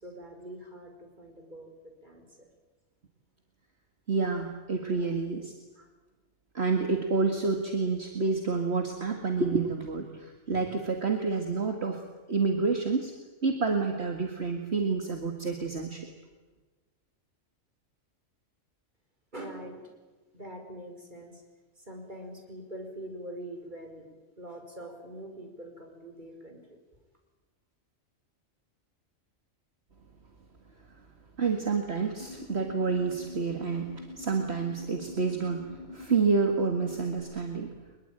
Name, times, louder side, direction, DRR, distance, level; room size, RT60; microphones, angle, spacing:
voice 1, 0.0-2.5 4.9-5.2 5.7-5.9 19.3-19.9 20.3-21.4 21.8-24.1 24.4-26.6, right 1 dB, 35° right, 3 dB, 5.3 m, -44 dB
voice 2, 4.1-5.5 6.5-12.0 12.3-13.1 13.4-16.0 31.4-37.7, right 4 dB, 55° right, 4 dB, 2.3 m, -29 dB
sound 1, 32.2-37.2, left 3 dB, 30° left, 4.7 m, -45 dB
23.0 x 22.0 x 9.0 m, 1.2 s
omnidirectional pair, 1.3 m